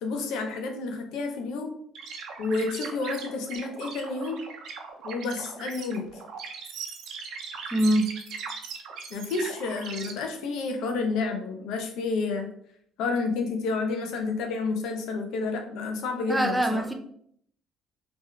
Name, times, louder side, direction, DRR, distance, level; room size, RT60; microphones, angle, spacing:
voice 1, 0.0-1.7 2.4-4.4 5.0-6.2 9.1-12.5 13.0-16.8, left 3 dB, 75° left, 4 dB, 0.8 m, -30 dB
sound 1, 1.9-10.1, right 5 dB, 70° right, 0.7 m, -39 dB
voice 2, 7.7-8.1 16.3-16.9, right 1 dB, 10° right, 5 dB, 0.5 m, -23 dB
3.6 x 3.1 x 3.2 m, 0.67 s
supercardioid pair, 90°, 0 cm